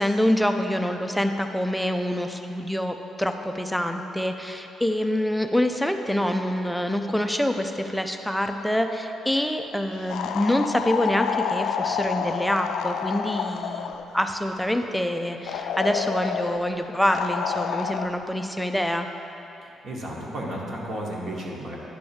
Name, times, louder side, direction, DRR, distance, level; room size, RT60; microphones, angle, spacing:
voice 1, 0.0-19.1, left 1 dB, ahead, 5 dB, 0.4 m, -26 dB
sound 1, 10.1-14.1 15.5-16.6 17.1-18.1, left 7 dB, 80° left, 0.3 m, -29 dB
voice 2, 19.6-21.8, right 1 dB, 45° right, -3 dB, 1.3 m, -33 dB
10.0 x 3.4 x 7.0 m, 3.0 s
cardioid pair, 175°, 0 cm